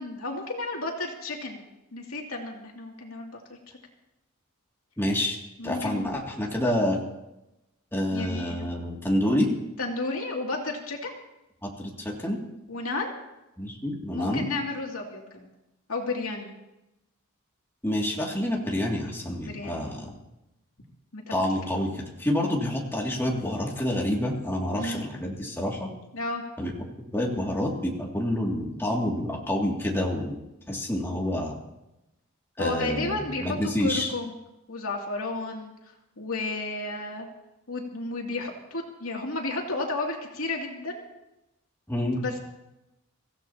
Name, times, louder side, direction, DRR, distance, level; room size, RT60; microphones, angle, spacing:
voice 1, 0.0-3.4 5.6-6.2 8.1-8.7 9.8-11.1 12.7-13.1 14.1-15.5 15.9-16.5 19.4-19.9 21.1-21.3 24.7-25.0 26.1-26.4 32.6-34.3 34.7-35.7 36.2-37.3 37.7-41.0 42.2-42.4, left 2 dB, 75° left, 0 dB, 2.7 m, -32 dB
voice 2, 5.0-5.4 5.6-7.0 7.9-9.5 11.6-12.4 13.6-14.4 17.8-20.1 21.3-25.9 26.6-26.7 27.1-30.4 30.7-31.6 32.6-34.1 41.9-42.2, left 1 dB, 10° left, -2 dB, 2.4 m, -28 dB
24.5 x 15.5 x 2.9 m, 0.92 s
head